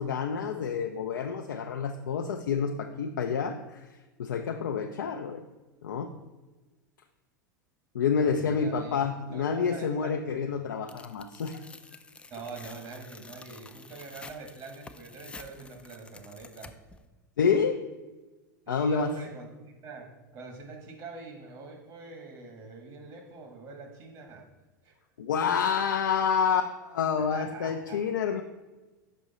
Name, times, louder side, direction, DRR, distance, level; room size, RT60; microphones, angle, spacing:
voice 1, 0.0-3.9 4.2-5.4 5.8-6.1 7.9-11.6 17.4-17.8 18.7-19.1 25.2-28.4, left 6 dB, 75° left, 5 dB, 0.4 m, -28 dB
voice 2, 8.2-10.5 12.3-16.7 18.7-20.1 20.3-24.4 24.8-24.9 27.1-28.0, right 4 dB, 45° right, 3 dB, 1.6 m, -44 dB
Tearing, 10.9-17.0, left 3 dB, 10° left, 0.4 m, -49 dB
6.2 x 5.3 x 4.1 m, 1.2 s
hypercardioid pair, 90°, 10 cm